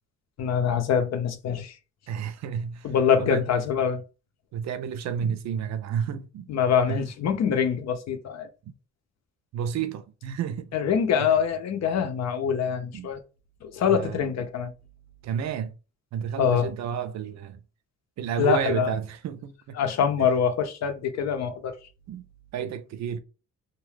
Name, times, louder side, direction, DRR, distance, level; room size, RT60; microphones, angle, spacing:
voice 1, 0.4-1.8 2.8-4.0 6.5-8.5 10.7-13.2 13.6-14.7 16.4-16.7 18.4-18.9 19.8-21.8, left 7 dB, 60° left, 0.6 m, -24 dB
voice 2, 2.1-2.9 3.2-3.4 4.5-6.5 6.9-7.0 7.5-7.6 8.7-8.8 9.5-10.8 12.9-13.1 13.9-14.3 15.2-15.7 16.1-17.6 18.2-19.7 22.1-22.2 22.5-23.2, right 7 dB, 65° right, 0.5 m, -31 dB
2.3 x 2.2 x 3.2 m
cardioid pair, 90°, 30 cm